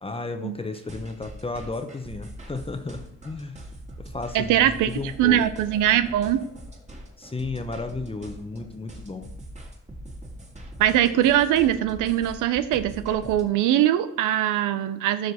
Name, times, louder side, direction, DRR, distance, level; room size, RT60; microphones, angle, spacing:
voice 1, 0.0-3.6 4.0-5.4 7.2-9.3, left 3 dB, 20° left, 7 dB, 0.9 m, -33 dB
sound 1, 0.7-13.4, right 1 dB, 25° right, 2.1 m, -42 dB
voice 2, 4.3-6.4 10.8-15.3, right 11 dB, 90° right, 11 dB, 0.6 m, -22 dB
12.0 x 6.4 x 4.2 m, 0.79 s
cardioid pair, 90°, 30 cm